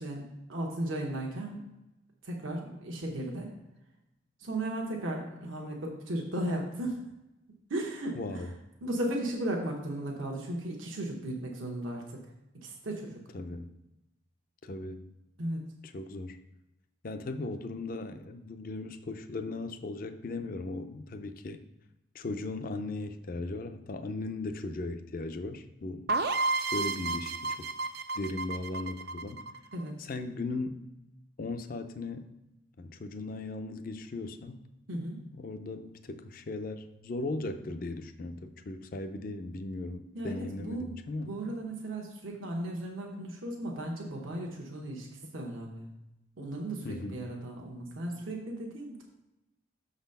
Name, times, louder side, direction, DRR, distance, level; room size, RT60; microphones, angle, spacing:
voice 1, 0.0-1.6 2.2-3.5 4.4-7.0 7.7-8.5 8.8-12.2 12.6-13.2 15.4-15.6 29.7-30.1 34.9-35.2 40.1-41.0 41.3-45.1 45.3-46.0 46.4-49.0, right 1 dB, 85° right, 0 dB, 1.1 m, -36 dB
voice 2, 8.1-8.5 13.3-13.7 14.6-15.0 15.9-16.4 17.0-21.6 22.1-26.1 26.7-27.7 28.1-29.5 30.0-30.8 31.4-32.3 32.8-34.6 35.4-41.4 45.2-45.3 46.8-47.2, left 2 dB, 45° left, 8 dB, 0.4 m, -37 dB
sound 1, 26.1-29.8, right 3 dB, 50° right, 0.4 m, -32 dB
6.5 x 4.1 x 5.3 m, 0.95 s
head